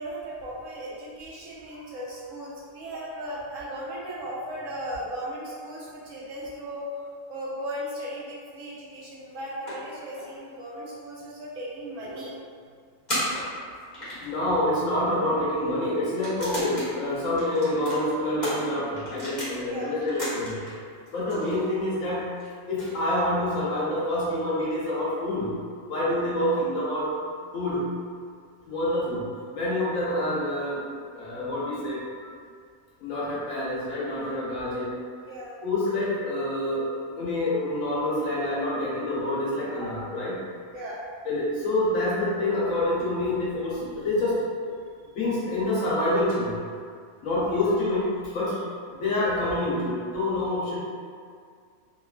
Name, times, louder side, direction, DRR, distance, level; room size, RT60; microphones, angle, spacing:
voice 1, 0.0-6.9 7.3-12.3 19.7-19.9 26.3-26.4 35.3-35.5 39.8-39.9 40.7-41.0 44.8-44.9 47.4-47.7 48.5-48.6, right 1 dB, 75° right, -7 dB, 1.0 m, -37 dB
sound 1, 8.9-10.5 10.9-11.0 11.2-11.3 12.0-12.2 13.1-14.4 15.1-15.2 16.1-16.9 17.3-19.6 20.0-20.7 21.1-23.5, equal, 35° left, 1.1 m, -35 dB
voice 2, 14.2-20.6 21.1-22.3 22.7-25.6 25.9-27.2 27.5-28.0 28.7-29.3 29.5-30.8 31.1-32.3 33.0-34.9 35.6-36.9 37.2-40.4 41.2-44.4 45.1-46.6 47.2-50.8, left 1 dB, 85° left, -8 dB, 1.2 m, -27 dB
3.0 x 2.3 x 2.3 m, 2.1 s
omnidirectional pair, 1.3 m